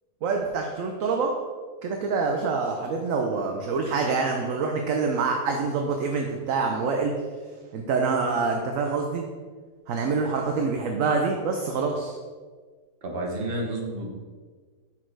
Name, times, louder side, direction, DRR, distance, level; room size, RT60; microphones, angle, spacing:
voice 1, 0.2-1.3 1.8-7.1 7.7-9.2 9.9-12.2, right 4 dB, 65° right, 3 dB, 0.9 m, -26 dB
voice 2, 13.0-14.1, right 1 dB, 40° right, 0 dB, 1.2 m, -30 dB
6.2 x 4.4 x 4.6 m, 1.5 s
omnidirectional pair, 1.8 m